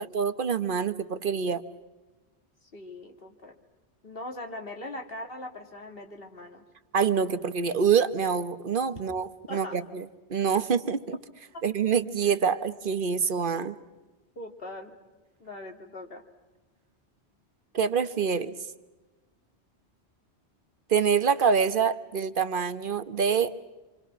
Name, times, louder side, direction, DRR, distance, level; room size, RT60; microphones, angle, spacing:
voice 1, 0.0-1.6 6.9-10.0 10.3-11.2 11.6-13.8 17.7-18.5 20.9-23.5, right 6 dB, 50° right, 11 dB, 1.1 m, -26 dB
voice 2, 2.7-3.6 4.0-6.7 9.5-9.8 14.4-14.9 15.4-16.2, left 1 dB, 55° left, 4 dB, 2.5 m, -40 dB
28.0 x 25.0 x 6.1 m, 1.2 s
omnidirectional pair, 1.2 m